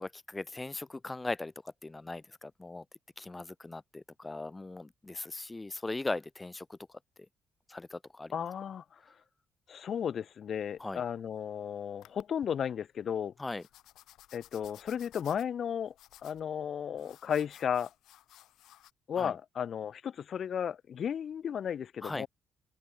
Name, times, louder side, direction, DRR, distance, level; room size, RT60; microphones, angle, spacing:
voice 1, 0.0-1.5 1.8-2.8 3.2-6.8 7.7-8.5 10.8-11.0 13.4-13.6 19.2-19.3 22.0-22.3, left 2 dB, 20° left, 0.3 m, -39 dB
voice 2, 8.3-8.8 9.7-13.3 14.3-15.9 16.2-17.9 19.1-22.3, left 8 dB, 55° left, 0.9 m, -34 dB
sound 1, 10.5-11.5 12.0-12.5 13.6-18.9, left 14 dB, 85° left, 1.2 m, -57 dB
open air
cardioid pair, 90°, 0 cm